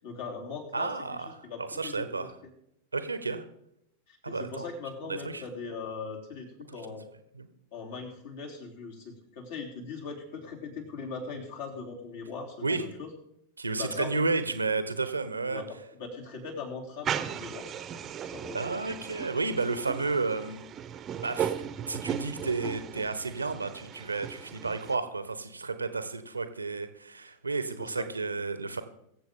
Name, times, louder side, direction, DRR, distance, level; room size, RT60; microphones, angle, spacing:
voice 1, 0.0-0.9 1.4-2.3 4.1-7.1 7.7-13.1 13.8-14.2 15.5-17.7 18.2-18.6 27.8-28.1, left 4 dB, 55° left, -1 dB, 3.3 m, -40 dB
voice 2, 0.7-2.3 2.9-3.4 4.2-4.7 5.0-5.4 7.3-7.5 12.6-12.8 13.6-15.6 18.5-20.6 21.2-21.5 21.9-28.8, right 3 dB, 80° right, 11 dB, 1.1 m, -32 dB
sound 1, 17.0-25.0, right 8 dB, 25° right, 0.9 m, -37 dB
23.0 x 7.8 x 3.8 m, 0.78 s
figure-of-eight pair, 90°, 0 cm